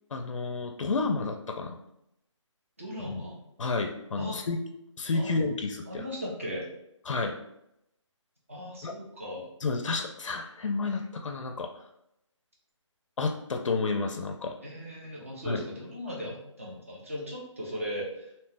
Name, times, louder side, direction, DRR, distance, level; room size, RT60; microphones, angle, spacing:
voice 1, 0.1-1.8 3.1-3.2 3.6-4.6 5.0-6.0 7.1-7.4 8.8-8.9 9.6-11.8 13.2-14.6 15.4-15.6, left 3 dB, 75° left, 4 dB, 0.4 m, -30 dB
voice 2, 2.8-3.4 4.2-4.4 5.1-5.6 5.9-6.7 8.5-9.5 14.6-18.3, equal, 25° right, -4 dB, 0.6 m, -37 dB
2.7 x 2.1 x 3.3 m, 0.80 s
hypercardioid pair, 180°, 16 cm